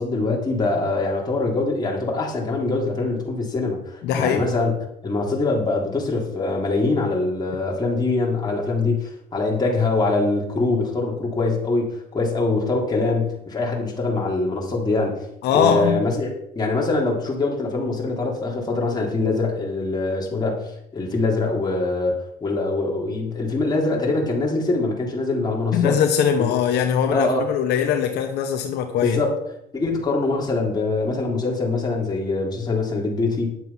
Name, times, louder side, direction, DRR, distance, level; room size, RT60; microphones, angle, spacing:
voice 1, 0.0-4.7 5.0-15.1 15.5-26.0 26.4-26.5 27.1-27.4 29.0-29.4 29.7-33.5, left 3 dB, 25° left, -2 dB, 3.5 m, -23 dB
voice 2, 4.0-4.4 15.4-16.0 25.7-29.2, left 8 dB, 80° left, 5 dB, 1.2 m, -21 dB
10.5 x 7.2 x 5.7 m, 0.77 s
cardioid pair, 110°, 17 cm